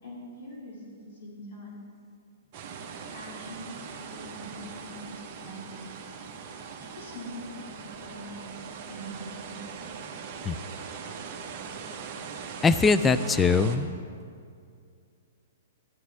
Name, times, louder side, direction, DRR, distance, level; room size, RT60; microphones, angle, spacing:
voice 1, 0.0-1.7 3.1-5.9 6.9-8.6 8.9-9.9, equal, 70° left, -4 dB, 2.7 m, -43 dB
sound 1, 2.5-13.8, right 6 dB, 40° right, 1.1 m, -41 dB
voice 2, 12.6-13.9, left 4 dB, 10° left, 13 dB, 0.3 m, -21 dB
13.5 x 11.0 x 3.5 m, 2.3 s
hypercardioid pair, 145°, 0 cm